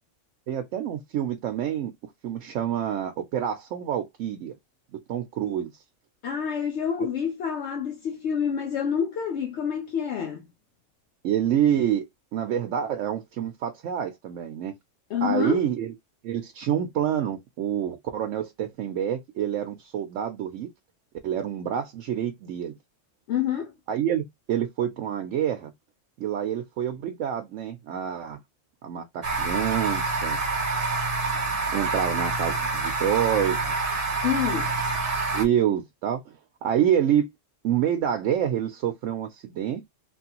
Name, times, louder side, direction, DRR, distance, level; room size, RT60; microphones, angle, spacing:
voice 1, 0.5-1.9 2.2-4.5 5.1-5.7 11.2-12.0 12.3-14.7 15.2-15.9 16.2-20.7 21.2-22.8 23.9-25.7 26.2-28.4 28.8-30.4 31.7-33.9 35.3-36.3 36.6-37.3 37.6-39.8, right 10 dB, 80° right, 0.9 m, -27 dB
voice 2, 6.2-10.4 15.1-15.6 23.3-23.7 34.2-34.8, left 8 dB, 70° left, 0.9 m, -27 dB
sound 1, 29.2-35.5, right 3 dB, 40° right, 0.6 m, -27 dB
3.0 x 2.6 x 2.8 m
omnidirectional pair, 1.3 m